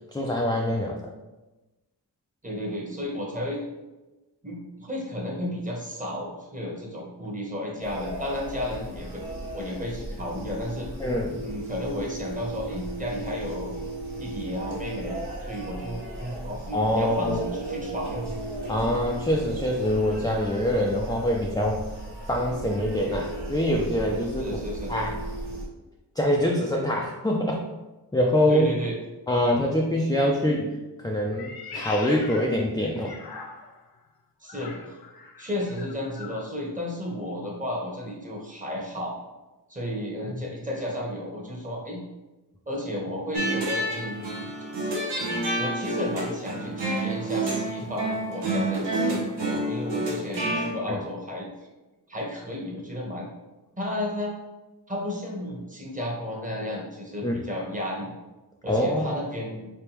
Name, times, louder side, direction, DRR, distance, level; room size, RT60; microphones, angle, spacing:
voice 1, 0.1-1.0 11.0-11.4 16.7-17.4 18.7-21.9 22.3-24.6 24.9-25.2 26.2-27.6 28.1-28.7 29.3-33.1 40.2-40.4 50.9-51.0 57.2-57.4 58.7-59.3, left 1 dB, 10° left, -1 dB, 0.4 m, -25 dB
voice 2, 2.4-3.6 4.4-9.2 9.5-10.9 11.4-13.8 14.2-18.3 24.4-25.0 28.5-29.0 34.4-34.9 35.4-39.2 39.7-42.0 42.7-44.4 45.5-51.5 52.1-53.3 53.8-54.4 54.9-58.2 58.6-59.7, left 1 dB, 20° right, -2 dB, 1.1 m, -33 dB
sound 1, 7.8-25.6, right 1 dB, 70° right, 1.5 m, -36 dB
Meow, 31.3-33.9 34.4-36.5, left 4 dB, 60° left, 0.6 m, -41 dB
sound 2, 43.3-50.7, right 2 dB, 85° right, 0.9 m, -28 dB
3.4 x 3.3 x 3.0 m, 1.1 s
wide cardioid pair, 60°, 41 cm